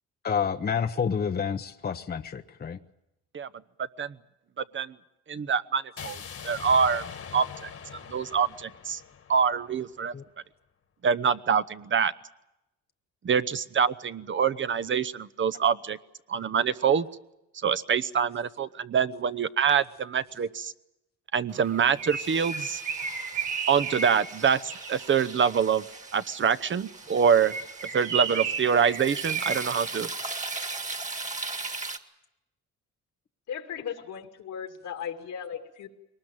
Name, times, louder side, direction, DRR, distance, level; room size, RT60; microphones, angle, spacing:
voice 1, 0.2-2.8 10.1-10.2, left 6 dB, 30° left, 8 dB, 0.9 m, -29 dB
voice 2, 4.6-4.9 5.3-7.0 7.3-9.0 9.3-10.1 11.0-12.1 13.2-16.0 16.3-17.1 17.6-20.7 21.3-22.8 23.7-24.6 24.9-25.8 26.1-27.5 27.9-30.1, right 7 dB, 40° right, 15 dB, 0.9 m, -25 dB
sound 1, 6.0-10.0, left 7 dB, 50° left, 1.8 m, -42 dB
Bird, 21.6-25.7 27.3-30.8, right 6 dB, 80° right, 4.0 m, -34 dB
sound 2, 22.1-32.0, right 3 dB, 25° right, 1.9 m, -39 dB
voice 3, 33.5-35.9, left 8 dB, 80° left, 5 dB, 2.5 m, -37 dB
22.5 x 19.5 x 8.9 m, 0.90 s
cardioid pair, 90°, 30 cm